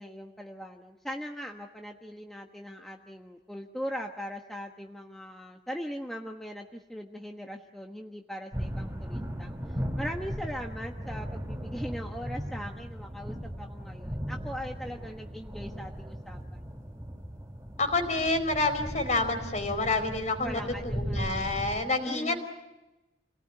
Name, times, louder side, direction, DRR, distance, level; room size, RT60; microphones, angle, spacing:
voice 1, 0.0-16.6 20.4-21.6 22.0-22.5, equal, ahead, 1 dB, 1.3 m, -40 dB
sound 1, 8.5-21.8, equal, 15° right, 3.8 m, -37 dB
voice 2, 17.8-22.5, left 2 dB, 40° left, 7 dB, 4.3 m, -28 dB
29.0 x 18.5 x 9.6 m, 1.0 s
head